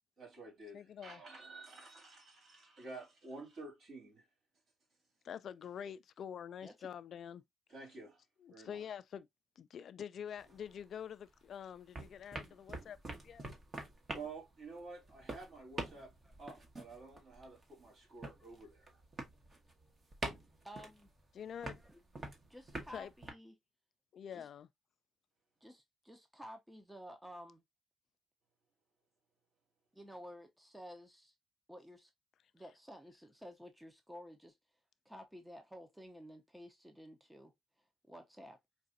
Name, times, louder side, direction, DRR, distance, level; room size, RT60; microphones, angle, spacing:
voice 1, 0.2-4.3 7.7-8.2 8.5-8.8 14.1-16.1 16.4-19.0, right 3 dB, 65° right, 2.7 m, -51 dB
voice 2, 0.7-1.2 5.2-7.4 8.4-9.3 9.6-13.4 21.3-21.8 22.9-23.1 24.1-24.7, left 8 dB, 60° left, 0.3 m, -46 dB
voice 3, 6.6-6.9 20.6-21.1 21.8-22.0 22.5-23.6 24.3-24.5 25.6-27.6 29.9-31.3 31.7-32.1 32.5-34.6 35.0-37.5 38.0-38.6, equal, 5° right, 0.8 m, -52 dB
sound 1, 10.4-11.5 11.8-23.3, right 2 dB, 35° right, 1.2 m, -46 dB
4.6 x 2.5 x 2.7 m
cardioid pair, 90°, 0 cm